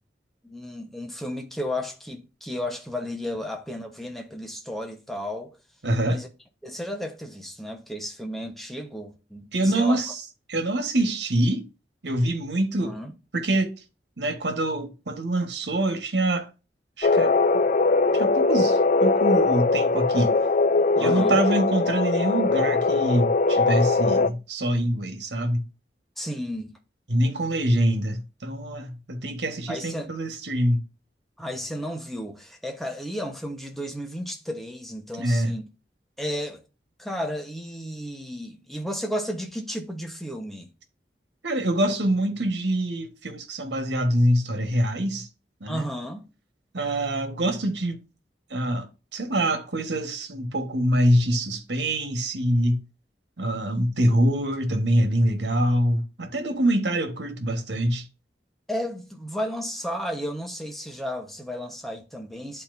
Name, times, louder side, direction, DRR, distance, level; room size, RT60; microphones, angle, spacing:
voice 1, 0.4-5.5 6.1-6.3 6.6-10.0 12.8-13.1 21.0-21.4 26.2-26.7 29.7-30.1 31.4-35.6 36.2-36.6 37.0-40.7 45.7-46.3 58.7-62.6, equal, ahead, 1.1 m, -33 dB
voice 2, 5.8-6.2 9.5-10.2 10.5-11.6 12.0-12.9 13.3-13.7 14.2-16.5 17.0-17.3 18.1-20.3 20.9-25.6 27.1-30.8 35.2-35.6 41.4-45.3 45.6-45.8 46.7-48.0 48.5-48.9 49.1-52.8 53.4-58.1, right 1 dB, 80° right, 1.5 m, -25 dB
sound 1, 17.0-24.3, left 3 dB, 45° left, 0.4 m, -21 dB
11.0 x 4.3 x 2.7 m
head